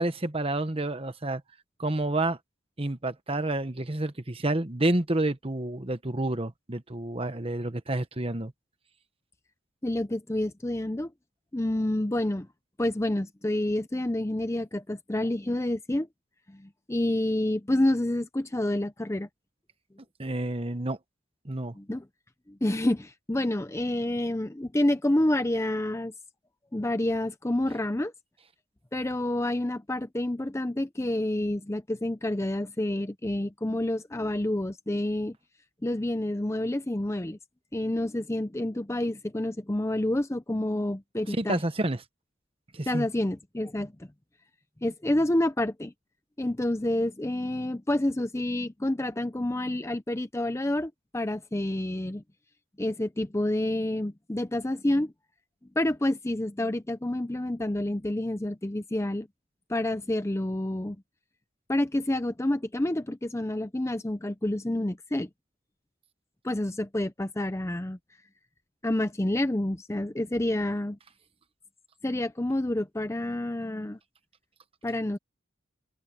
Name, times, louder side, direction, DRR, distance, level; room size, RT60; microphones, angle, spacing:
voice 1, 0.0-1.4 1.8-2.4 2.8-8.5 20.2-21.0 21.4-21.7 41.3-42.0 42.7-43.1, right 2 dB, 25° right, 1.2 m, -29 dB
voice 2, 9.8-11.1 11.5-12.5 12.8-16.1 16.5-19.3 21.7-22.0 22.5-26.1 26.7-28.1 28.9-35.4 35.8-37.4 37.7-41.6 42.9-43.9 44.8-45.9 46.4-52.2 52.8-55.1 55.8-59.3 59.7-61.0 61.7-65.3 66.4-68.0 68.8-71.0 72.0-74.0 74.8-75.2, left 1 dB, 15° left, 0.5 m, -28 dB
head